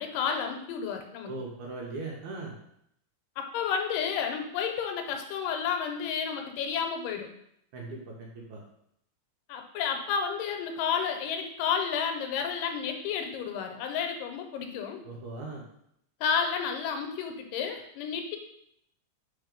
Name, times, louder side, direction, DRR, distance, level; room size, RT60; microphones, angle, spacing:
voice 1, 0.0-1.3 3.4-7.3 9.5-15.0 16.2-18.4, left 7 dB, 85° left, 5 dB, 2.3 m, -31 dB
voice 2, 1.3-2.6 7.7-8.6 15.0-15.6, right 3 dB, 75° right, -2 dB, 2.0 m, -39 dB
4.6 x 4.1 x 5.1 m, 0.74 s
omnidirectional pair, 3.8 m